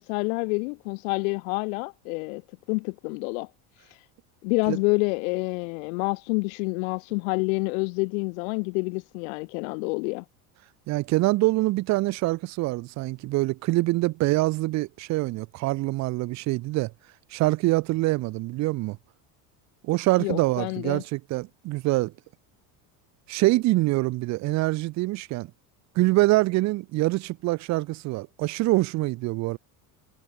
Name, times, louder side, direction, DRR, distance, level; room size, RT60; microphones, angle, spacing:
voice 1, 0.0-2.4 2.7-3.5 4.4-10.2 20.2-21.0, left 31 dB, 80° left, 1.2 m, -28 dB
voice 2, 10.9-16.9 17.3-19.0 19.8-22.1 23.3-25.5 25.9-29.6, right 20 dB, 40° right, 0.9 m, -25 dB
cardioid pair, 160°, 40 cm